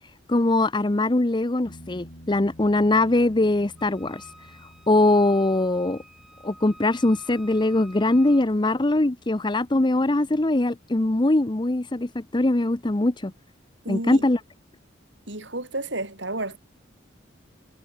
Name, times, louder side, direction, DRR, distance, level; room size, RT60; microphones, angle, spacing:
voice 1, 0.3-4.2 4.9-6.0 6.4-13.3 13.9-14.4, left 2 dB, 25° left, 0.7 m, -22 dB
sound 1, 1.7-9.3 12.3-12.4, equal, 55° left, 5.8 m, -51 dB
Wind instrument woodwind instrument, 3.8-8.5, equal, ahead, 5.4 m, -49 dB
voice 2, 13.8-14.2 15.3-16.6, right 2 dB, 65° right, 7.8 m, -31 dB
head